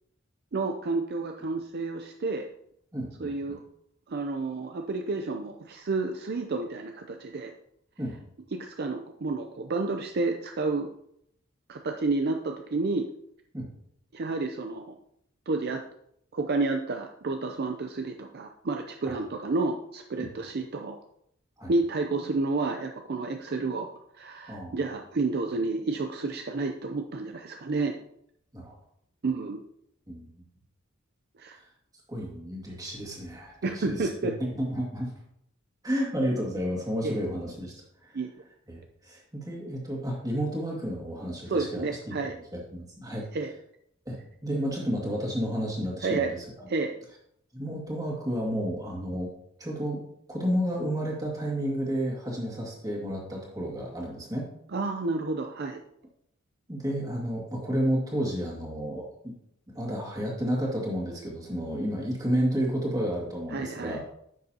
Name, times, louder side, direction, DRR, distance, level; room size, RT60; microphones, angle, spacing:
voice 1, 0.5-2.5 3.2-3.6 4.1-7.5 8.5-10.9 11.7-13.1 14.1-14.8 15.5-15.8 16.3-21.0 21.7-23.9 24.2-28.0 29.2-29.6 31.4-31.6 33.6-34.3 37.0-37.1 38.1-38.3 41.5-42.3 43.3-43.5 46.0-46.3 46.7-46.9 54.7-55.8 63.5-64.0, right 3 dB, 55° right, 4 dB, 0.5 m, -30 dB
voice 2, 2.9-3.6 8.0-8.2 13.5-13.7 20.2-20.3 21.6-21.7 24.5-24.8 28.5-28.8 30.1-30.3 32.1-35.1 35.8-37.8 38.7-42.1 42.5-43.2 44.1-46.4 47.5-49.3 49.6-50.0 50.3-54.4 56.7-59.3 59.7-64.0, equal, 20° right, -2 dB, 2.1 m, -31 dB
10.0 x 6.5 x 2.9 m, 0.73 s
head